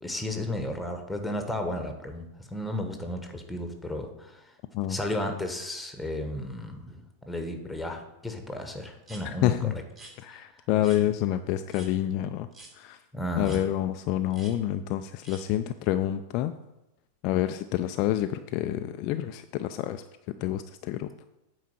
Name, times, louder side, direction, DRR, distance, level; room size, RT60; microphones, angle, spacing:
voice 1, 0.0-4.4 4.9-9.8 10.2-10.4 13.1-13.6, left 1 dB, 5° left, 5 dB, 1.3 m, -34 dB
sound 1, 9.0-9.2 9.9-10.1 10.8-11.0 11.7-11.9 12.5-12.7 13.4-13.6 14.3-14.5 15.2-15.4, right 2 dB, 25° right, 2.4 m, -47 dB
voice 2, 9.2-9.7 10.2-12.5 12.7-13.0 13.4-16.5 17.2-20.0 20.4-21.1, left 12 dB, 40° left, 9 dB, 0.4 m, -28 dB
9.0 x 4.7 x 6.3 m, 0.95 s
figure-of-eight pair, 90°, 0 cm